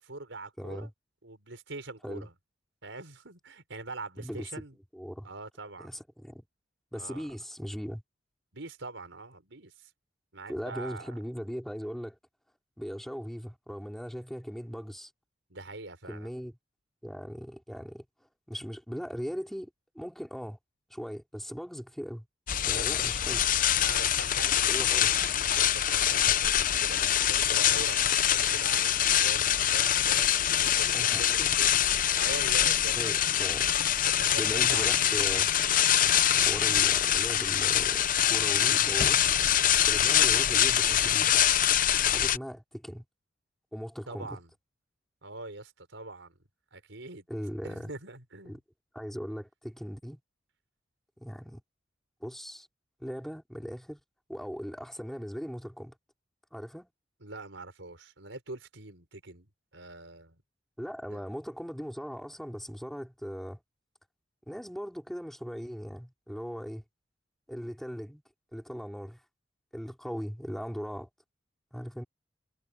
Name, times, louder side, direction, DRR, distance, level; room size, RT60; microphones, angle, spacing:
voice 1, 0.0-0.9 1.2-2.3 2.8-4.8 5.2-5.9 6.9-7.3 8.5-9.9 10.3-11.1 15.5-16.3 22.7-23.2 23.8-31.7 32.1-33.7 34.0-35.1 44.1-44.5 45.2-46.3 46.7-47.2 47.6-48.6 57.2-60.4 61.1-61.2, right 2 dB, 80° right, 4.8 m, -43 dB
voice 2, 0.6-0.9 2.0-2.3 4.2-4.5 4.9-5.3 5.8-6.4 6.9-8.0 10.5-12.2 12.8-15.1 16.1-16.6 17.0-18.0 18.5-20.6 20.9-22.3 22.6-23.4 24.7-25.3 30.9-31.5 33.0-33.7 34.3-35.5 36.3-39.2 39.8-41.5 42.1-43.0 43.7-44.4 47.3-47.9 48.4-48.6 48.9-50.2 51.2-51.6 52.2-52.7 53.0-54.0 54.3-56.0 56.5-56.9 60.8-63.6 64.5-66.8 67.5-68.2 68.5-69.2 69.7-71.1 71.7-72.0, equal, ahead, 4.3 m, -39 dB
sound 1, 22.5-42.4, left 10 dB, 45° left, 0.7 m, -24 dB
head